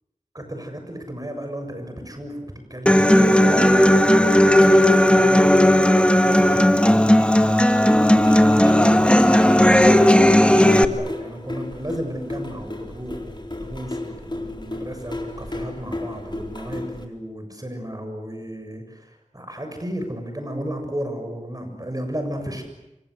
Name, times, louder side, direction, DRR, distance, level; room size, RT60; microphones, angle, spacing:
voice 1, 0.3-9.9 10.2-22.6, equal, 30° right, 5 dB, 7.3 m, -34 dB
Human voice / Acoustic guitar, 2.9-10.8, left 1 dB, 10° left, 1.8 m, -15 dB
sound 1, 7.9-17.0, left 2 dB, 40° left, 4.2 m, -34 dB
27.0 x 25.5 x 8.2 m, 0.95 s
wide cardioid pair, 40°, 13 cm